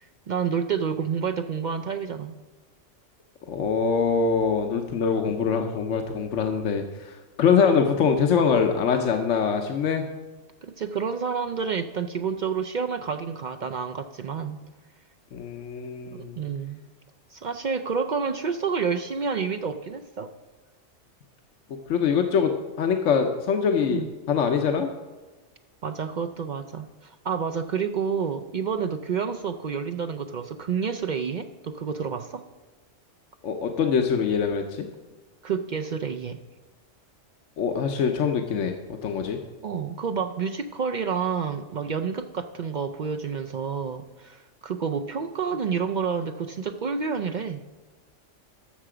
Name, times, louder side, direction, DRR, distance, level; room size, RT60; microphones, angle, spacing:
voice 1, 0.0-2.4 7.6-7.8 10.6-14.6 16.1-16.8 17.3-20.3 23.8-24.1 25.8-32.4 35.4-36.4 39.6-47.6, right 6 dB, 55° right, 8 dB, 0.5 m, -29 dB
voice 2, 3.5-10.0 15.3-16.4 21.9-22.5 22.8-24.9 33.4-34.9 37.6-38.7 39.0-39.4, left 6 dB, 80° left, 4 dB, 1.2 m, -23 dB
13.0 x 6.8 x 4.9 m, 1.2 s
omnidirectional pair, 1.3 m